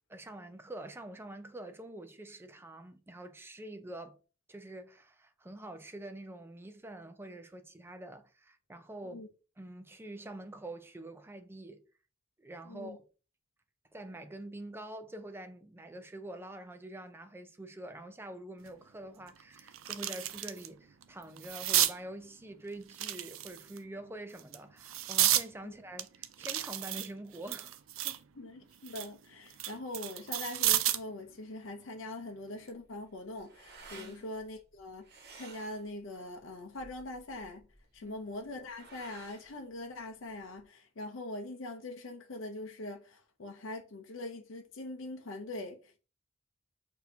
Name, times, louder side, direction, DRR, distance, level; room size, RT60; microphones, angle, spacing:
voice 1, 0.1-4.2 4.5-9.2 9.6-11.8 12.4-13.1 13.9-28.2 34.0-34.3 38.0-38.2, right 1 dB, 10° right, 0.5 m, -46 dB
sound 1, 18.7-18.8 19.2-20.7 21.0-22.0 22.9-23.8 24.4-25.5 26.0-28.2 28.6-31.1 32.5-32.7, right 13 dB, 90° right, 0.4 m, -32 dB
voice 2, 28.4-35.0 35.3-37.7 37.9-46.0, left 2 dB, 75° left, 0.6 m, -42 dB
sound 2, 32.7-40.6, right 3 dB, 55° right, 1.1 m, -55 dB
6.2 x 2.8 x 2.7 m
head